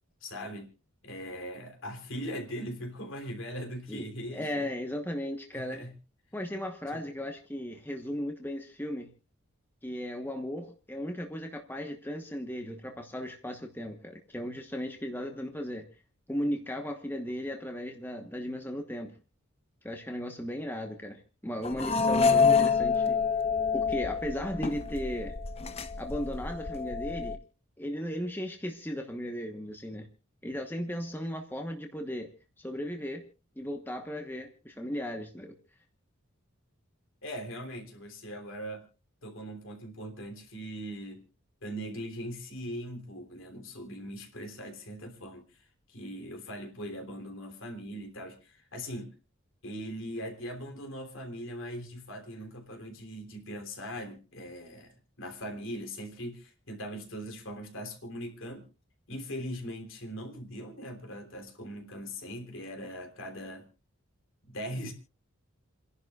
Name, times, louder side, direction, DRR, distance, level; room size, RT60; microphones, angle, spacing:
voice 1, 0.2-0.7 1.0-4.7 5.5-5.9 6.9-7.0 37.2-38.8 39.2-41.2 41.6-49.1 49.6-58.7 59.1-63.7 64.4-64.9, equal, 60° left, 4 dB, 3.3 m, -40 dB
voice 2, 3.9-5.9 6.3-9.1 9.8-15.9 16.3-19.1 19.8-23.2 23.7-25.3 26.0-27.4 27.8-30.1 30.4-32.3 32.6-33.2 33.6-35.5, equal, 10° left, 3 dB, 1.1 m, -36 dB
sound 1, 21.6-27.4, left 5 dB, 25° left, 0.7 m, -27 dB
29.5 x 11.0 x 2.4 m, 0.33 s
head